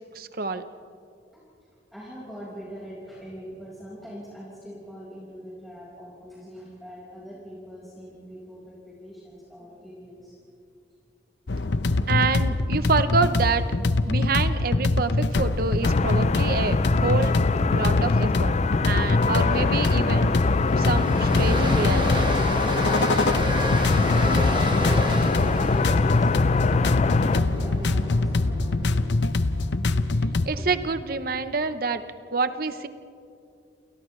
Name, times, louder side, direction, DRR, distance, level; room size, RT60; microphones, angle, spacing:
voice 1, 0.1-0.6 12.1-13.7 14.0-17.4 17.7-18.6 18.8-20.3 20.8-22.1 30.5-32.0 32.3-32.9, right 4 dB, 55° right, 10 dB, 0.8 m, -27 dB
voice 2, 1.9-10.4 24.2-29.1 29.9-30.1 30.6-30.8, equal, ahead, -8 dB, 5.1 m, -41 dB
sound 1, 11.5-30.5, left 2 dB, 90° left, 0.8 m, -24 dB
sound 2, 15.8-27.4, left 4 dB, 40° left, 0.4 m, -24 dB
Train, 18.2-18.3 18.5-18.6 19.0-29.2, right 2 dB, 30° right, 1.6 m, -33 dB
29.5 x 29.5 x 3.3 m, 2.4 s
head